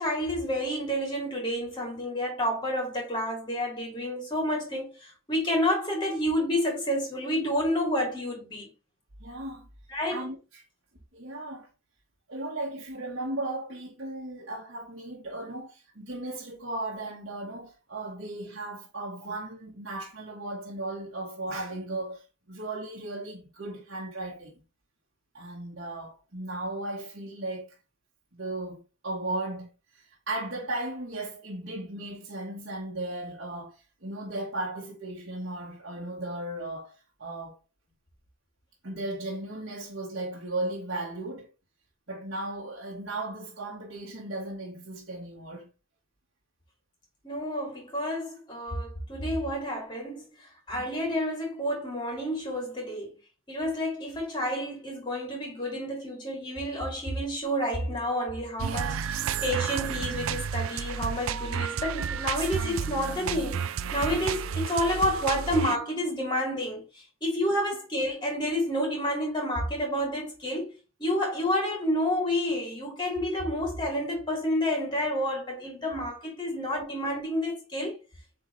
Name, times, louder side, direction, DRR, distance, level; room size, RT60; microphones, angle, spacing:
voice 1, 0.0-8.7 9.9-10.2 47.2-53.1 53.5-63.6 63.9-70.7 71.0-78.0, equal, 20° left, 2.9 m, -29 dB
voice 2, 9.2-9.7 10.1-10.6 11.1-11.7 12.3-24.5 25.3-27.7 28.3-37.6 38.8-41.5 42.1-45.7 50.7-50.8, right 2 dB, 55° right, 1.4 m, -36 dB
sound 1, 58.6-65.8, right 7 dB, 80° right, 0.4 m, -31 dB
8.3 x 3.9 x 3.1 m
head